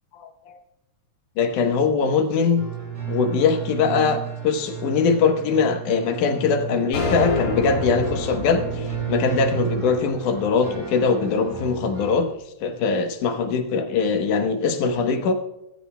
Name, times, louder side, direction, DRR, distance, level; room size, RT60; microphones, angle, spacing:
voice 1, 0.1-0.5 1.4-2.7 3.0-12.3 12.6-15.3, left 5 dB, 85° left, 5 dB, 2.6 m, -22 dB
sound 1, 2.6-12.2, right 9 dB, 35° right, 4.1 m, -33 dB
sound 2, 6.9-11.4, left 3 dB, 65° left, 3.5 m, -29 dB
24.0 x 13.5 x 2.2 m, 0.86 s
omnidirectional pair, 3.5 m